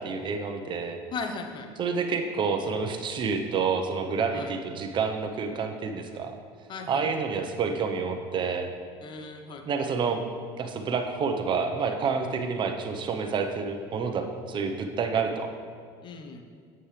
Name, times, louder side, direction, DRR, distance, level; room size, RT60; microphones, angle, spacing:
voice 1, 0.0-1.0 1.8-6.3 6.9-8.7 9.6-10.2 10.6-15.5, right 5 dB, 40° right, 5 dB, 1.0 m, -28 dB
voice 2, 1.1-1.7 4.3-4.5 6.7-7.1 9.0-9.6 16.0-16.4, left 4 dB, 40° left, 5 dB, 1.0 m, -37 dB
8.9 x 8.4 x 3.4 m, 2.2 s
supercardioid pair, 95°, 12 cm